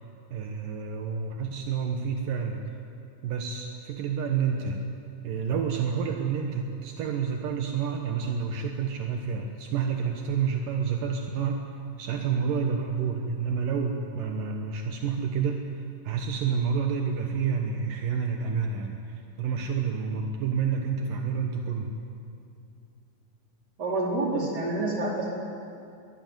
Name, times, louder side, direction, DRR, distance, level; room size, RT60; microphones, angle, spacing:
voice 1, 0.3-2.6 3.2-4.8 5.2-11.6 12.0-21.9, right 6 dB, 75° right, 3 dB, 2.8 m, -29 dB
voice 2, 23.8-25.3, right 2 dB, 30° right, -3 dB, 4.8 m, -28 dB
22.5 x 17.0 x 9.5 m, 2.5 s
omnidirectional pair, 4.0 m